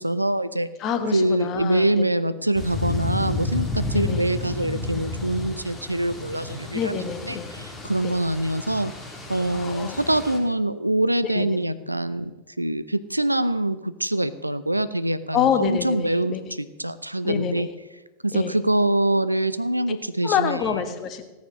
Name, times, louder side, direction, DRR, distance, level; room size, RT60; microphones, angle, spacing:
voice 1, 0.0-0.7 1.1-6.9 7.3-8.9 9.3-12.3 12.6-16.3 16.8-17.7 18.2-20.6, right 1 dB, 85° right, 14 dB, 0.6 m, -24 dB
voice 2, 0.8-2.0 3.9-4.3 6.7-7.5 8.0-8.1 9.5-10.0 11.2-11.6 15.3-16.5 17.2-17.7 18.3-18.6 20.2-21.3, left 8 dB, 35° left, 9 dB, 1.4 m, -27 dB
sound 1, 2.5-10.4, left 3 dB, 15° left, 2.7 m, -31 dB
16.0 x 9.4 x 6.3 m, 1.1 s
figure-of-eight pair, 90°, 0 cm